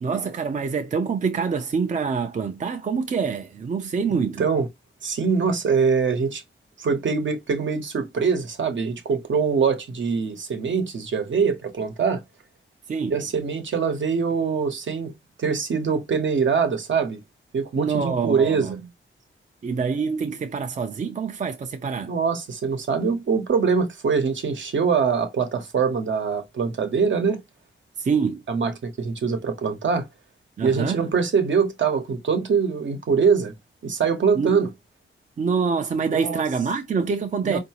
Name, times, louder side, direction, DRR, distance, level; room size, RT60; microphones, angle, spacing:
voice 1, 0.0-4.4 12.9-13.2 17.7-18.7 19.6-22.1 28.0-28.4 30.6-31.0 34.4-34.6 35.4-37.6, right 5 dB, 35° right, 0.5 m, -25 dB
voice 2, 4.1-4.7 5.0-6.4 6.8-12.2 13.1-15.1 15.4-17.2 17.5-18.8 22.1-27.4 28.5-30.1 30.6-33.5 33.8-34.7 36.1-36.4 37.4-37.6, right 5 dB, 65° right, 1.0 m, -23 dB
4.6 x 2.6 x 2.9 m
wide cardioid pair, 135°, 21 cm